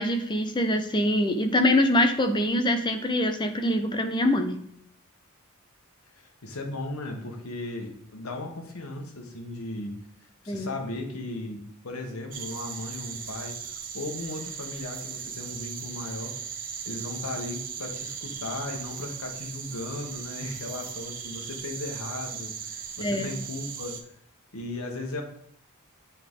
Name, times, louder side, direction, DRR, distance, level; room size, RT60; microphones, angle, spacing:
voice 1, 0.0-4.6 10.5-10.7 23.0-23.3, left 1 dB, 20° left, 6 dB, 0.6 m, -24 dB
voice 2, 6.1-10.0 10.4-16.4 16.8-23.9 24.5-25.2, left 2 dB, 80° left, 3 dB, 1.2 m, -36 dB
sound 1, 12.3-24.0, right 7 dB, 40° right, 0.6 m, -38 dB
8.5 x 3.8 x 3.6 m, 0.66 s
head